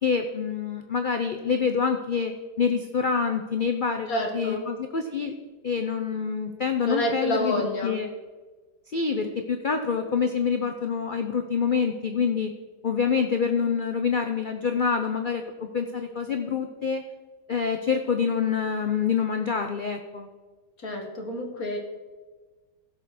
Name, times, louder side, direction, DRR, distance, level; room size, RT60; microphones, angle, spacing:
voice 1, 0.0-5.3 5.6-8.1 8.9-12.5 12.8-17.0 17.5-20.3, left 6 dB, 80° left, 6 dB, 0.4 m, -26 dB
voice 2, 4.1-4.6 6.8-8.0 20.8-21.8, left 1 dB, 55° left, 1 dB, 2.1 m, -28 dB
16.0 x 6.6 x 4.1 m, 1.3 s
omnidirectional pair, 1.9 m